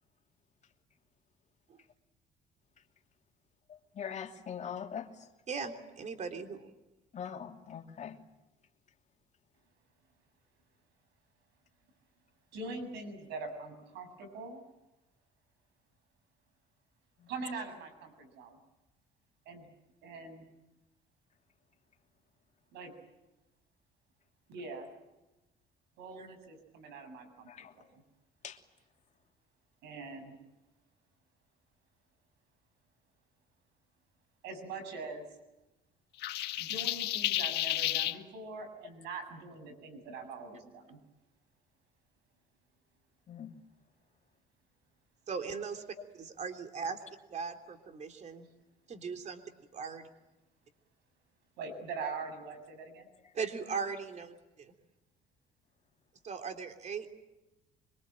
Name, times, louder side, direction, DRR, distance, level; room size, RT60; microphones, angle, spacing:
voice 1, 3.7-5.1 7.1-8.2 17.2-17.3 27.5-27.7 28.4-28.6 43.3-43.5, left 8 dB, 45° left, 3 dB, 2.9 m, -42 dB
voice 2, 5.5-6.7 26.2-26.3 45.3-45.8 46.2-47.0 47.3-48.5 48.9-49.4 49.7-50.1 53.3-54.7 56.2-57.2, right 5 dB, 45° right, 6 dB, 3.4 m, -39 dB
voice 3, 12.5-14.6 17.3-18.6 19.5-19.7 20.0-20.5 22.7-22.9 24.5-24.9 26.0-27.9 29.8-30.4 34.4-35.2 36.6-41.0 51.6-53.1, right 3 dB, 85° right, 7 dB, 7.5 m, -43 dB
sound 1, 36.2-38.2, left 15 dB, 80° left, 1.5 m, -32 dB
25.5 x 24.0 x 9.0 m, 1.0 s
cardioid pair, 110°, 17 cm